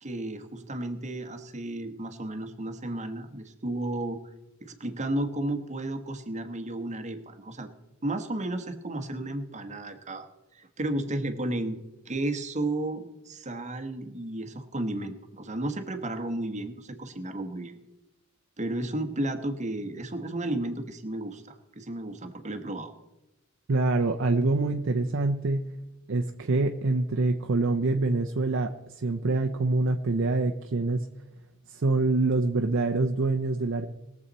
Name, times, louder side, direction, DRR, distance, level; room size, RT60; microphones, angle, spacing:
voice 1, 0.0-4.2 4.6-7.7 8.0-10.3 10.5-17.8 18.6-22.9, right 1 dB, 35° right, 7 dB, 1.2 m, -33 dB
voice 2, 23.7-25.6 26.1-31.1 31.7-33.9, right 3 dB, 65° right, 4 dB, 0.6 m, -25 dB
21.0 x 7.4 x 4.1 m, 1.0 s
head